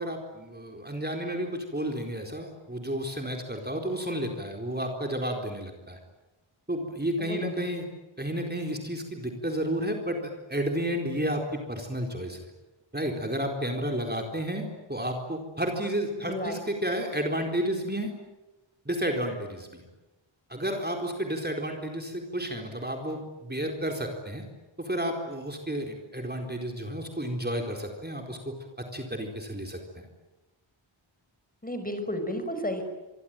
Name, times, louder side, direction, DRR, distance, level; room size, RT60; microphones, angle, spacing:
voice 1, 0.0-6.0 6.7-7.8 8.2-10.2 10.5-11.4 11.7-12.5 12.9-18.1 18.9-19.8 20.5-24.4 24.8-28.4 28.9-29.8, equal, 20° right, 2 dB, 4.2 m, -31 dB
voice 2, 7.2-7.7 16.2-16.6 31.6-32.8, equal, 15° left, 7 dB, 5.9 m, -33 dB
26.5 x 23.5 x 9.2 m, 1.1 s
wide cardioid pair, 80°, 49 cm